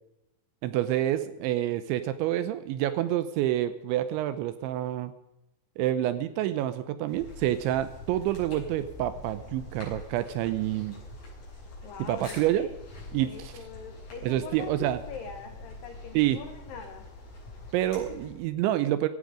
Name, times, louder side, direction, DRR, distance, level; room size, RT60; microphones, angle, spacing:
voice 1, 0.6-5.1 5.8-11.0 12.1-12.7 13.1-13.5 14.2-15.0 16.1-16.4 17.7-19.1, right 13 dB, 80° right, 13 dB, 2.8 m, -28 dB
sound 1, 7.1-18.5, left 2 dB, 35° left, 6.1 m, -45 dB
voice 2, 11.8-12.7 13.2-17.1 18.1-18.2, left 6 dB, 80° left, 7 dB, 2.0 m, -43 dB
16.5 x 13.5 x 5.1 m, 0.90 s
omnidirectional pair, 5.8 m